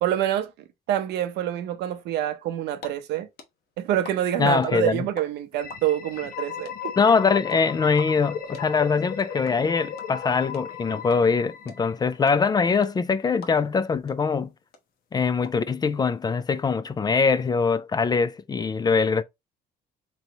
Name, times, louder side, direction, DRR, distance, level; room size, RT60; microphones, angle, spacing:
voice 1, 0.0-0.5 0.9-3.3 3.8-6.9, right 12 dB, 80° right, 0.7 m, -26 dB
sound 1, 2.5-2.9 3.1-5.2 5.5-13.8 14.1-14.2 14.4-15.5, left 4 dB, 75° left, 1.0 m, -43 dB
voice 2, 4.4-5.0 7.0-14.5 15.1-19.2, left 5 dB, 25° left, 0.3 m, -23 dB
sound 2, 5.5-12.3, left 8 dB, 55° left, 0.8 m, -36 dB
4.1 x 3.0 x 2.8 m
cardioid pair, 110°, 17 cm